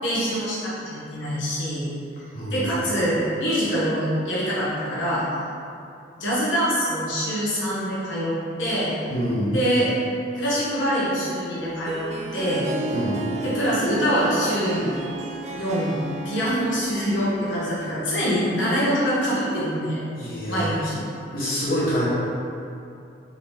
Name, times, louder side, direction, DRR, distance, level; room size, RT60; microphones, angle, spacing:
voice 1, 0.0-1.9 2.5-5.3 6.2-8.9 9.5-9.9 10.3-12.0 12.3-12.7 13.4-14.9 15.5-20.0 20.5-21.0, equal, 80° left, -9 dB, 1.2 m, -24 dB
voice 2, 2.3-2.7 9.1-9.6 12.9-13.2 20.2-20.9 21.3-22.0, equal, 50° left, -9 dB, 1.1 m, -26 dB
Harp, 11.5-18.1, right 2 dB, 35° right, 0.3 m, -33 dB
3.9 x 3.2 x 3.5 m, 2.6 s
head